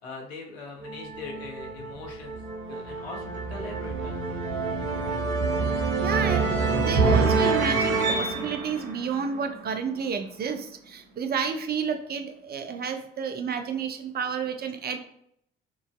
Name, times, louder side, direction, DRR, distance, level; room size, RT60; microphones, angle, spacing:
voice 1, 0.0-2.4 2.7-4.4, left 3 dB, 80° left, 1 dB, 0.9 m, -41 dB
sound 1, 0.8-9.9, right 4 dB, 65° right, 0.8 m, -27 dB
voice 2, 6.0-15.0, right 6 dB, 30° right, 7 dB, 0.5 m, -30 dB
5.9 x 2.6 x 2.2 m, 0.70 s
figure-of-eight pair, 50°, 31 cm